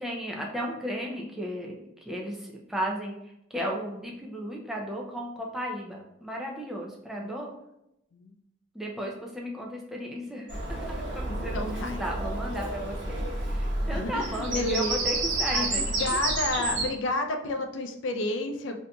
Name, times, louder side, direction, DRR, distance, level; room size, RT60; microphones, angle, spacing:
voice 1, 0.0-1.7 2.0-3.1 3.5-7.5 8.7-16.2, equal, ahead, -2 dB, 0.4 m, -35 dB
Bird vocalization bird call bird song, 10.5-16.9, right 2 dB, 80° right, 1.0 m, -30 dB
voice 2, 11.2-12.1 13.9-15.1 15.5-18.8, left 2 dB, 80° left, 5 dB, 0.4 m, -31 dB
3.8 x 2.7 x 2.2 m, 0.84 s
head